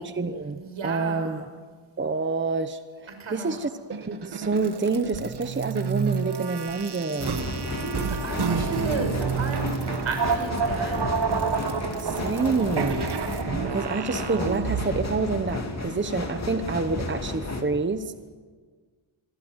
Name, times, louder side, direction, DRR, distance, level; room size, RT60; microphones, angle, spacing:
voice 1, 0.0-1.5 2.0-7.5 12.0-13.1 13.6-18.1, right 4 dB, 25° right, 9 dB, 1.0 m, -28 dB
voice 2, 0.6-1.4 3.1-3.6 7.5-11.0, right 3 dB, 80° right, 6 dB, 5.6 m, -34 dB
sound 1, 3.9-15.2, right 6 dB, 55° right, 1.6 m, -29 dB
sound 2, 7.2-17.6, left 2 dB, 35° left, 3.0 m, -33 dB
25.5 x 22.0 x 8.1 m, 1.5 s
wide cardioid pair, 160°, 48 cm